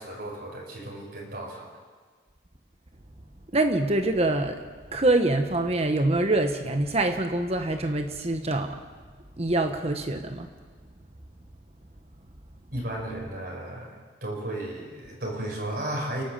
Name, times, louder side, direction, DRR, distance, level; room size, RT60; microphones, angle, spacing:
voice 1, 0.0-1.8 12.7-16.2, right 1 dB, 60° right, -2 dB, 5.4 m, -34 dB
voice 2, 3.5-4.6 4.9-8.8 9.4-10.5, right 2 dB, 35° right, 6 dB, 1.1 m, -25 dB
29.0 x 12.0 x 7.5 m, 1.5 s
head